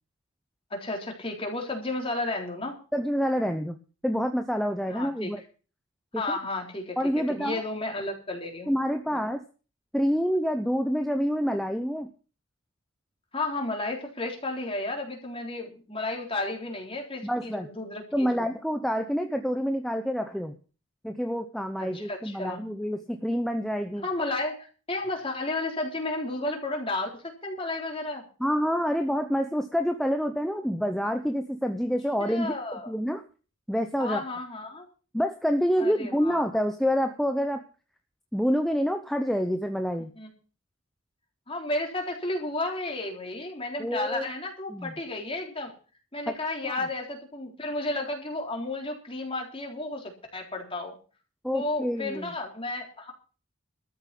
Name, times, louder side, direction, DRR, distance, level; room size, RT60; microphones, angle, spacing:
voice 1, 0.7-2.8 4.9-5.3 6.1-8.7 9.1-9.2 13.3-18.0 18.3-18.5 21.8-22.6 24.0-24.6 24.9-28.2 32.2-32.9 34.0-34.9 35.8-36.4 40.2-40.3 41.5-45.7 46.1-51.0 51.5-53.1, left 2 dB, 25° left, 1 dB, 3.8 m, -32 dB
voice 2, 2.9-3.8 4.0-5.4 6.1-6.4 7.0-7.6 8.7-9.4 9.9-12.1 17.2-17.7 18.1-20.5 21.0-24.0 28.4-33.2 33.7-34.2 35.1-37.6 38.3-40.1 43.8-44.3 44.7-45.0 46.3-46.4 46.6-46.8 51.4-52.3, equal, ahead, 6 dB, 0.7 m, -27 dB
13.5 x 7.3 x 8.3 m, 0.37 s
head